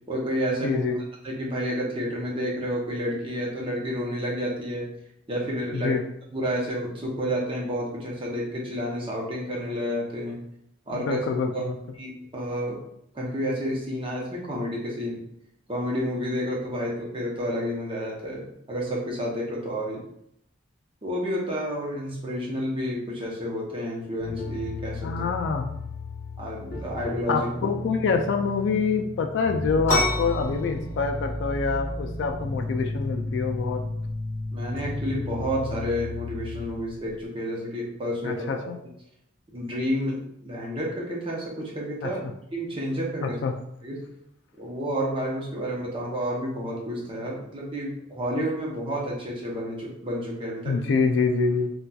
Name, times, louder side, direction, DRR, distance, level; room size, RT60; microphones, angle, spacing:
voice 1, 0.1-0.8 1.2-4.9 5.3-6.0 6.3-10.4 10.9-11.2 11.5-11.7 12.0-12.8 13.1-15.2 15.7-20.0 21.0-25.3 26.4-27.5 34.5-38.7 39.5-42.2 42.5-43.4 43.8-44.1 44.6-50.8, equal, 30° right, -3 dB, 0.7 m, -30 dB
voice 2, 0.6-1.0 5.7-6.0 10.9-11.8 25.0-25.7 27.3-33.8 38.2-38.8 42.0-42.1 43.2-43.5 50.7-51.7, left 4 dB, 70° left, 4 dB, 0.3 m, -26 dB
sound 1, 24.2-36.7, left 2 dB, 50° left, 0.9 m, -33 dB
sound 2, 29.9-37.2, left 2 dB, 15° left, 0.8 m, -33 dB
4.0 x 2.3 x 2.3 m, 0.74 s
head